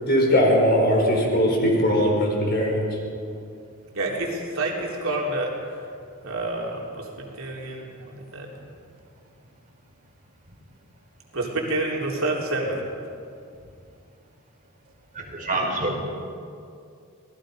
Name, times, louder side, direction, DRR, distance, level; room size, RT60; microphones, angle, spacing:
voice 1, 0.0-2.9, equal, 50° left, 0 dB, 4.9 m, -20 dB
voice 2, 3.9-5.8 6.2-8.5 11.3-12.8, right 2 dB, 70° right, -1 dB, 3.7 m, -28 dB
voice 3, 15.2-16.0, right 2 dB, 40° right, -1 dB, 5.1 m, -27 dB
27.0 x 19.0 x 5.2 m, 2.4 s
head